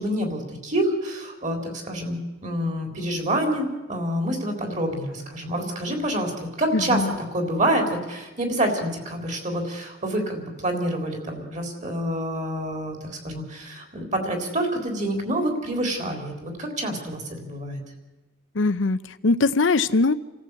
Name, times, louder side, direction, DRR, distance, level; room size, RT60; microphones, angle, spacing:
voice 1, 0.0-17.8, right 1 dB, 40° right, 4 dB, 4.0 m, -27 dB
voice 2, 6.7-7.1 18.5-20.1, left 3 dB, 80° left, 13 dB, 0.7 m, -21 dB
28.0 x 14.5 x 8.3 m, 1.1 s
head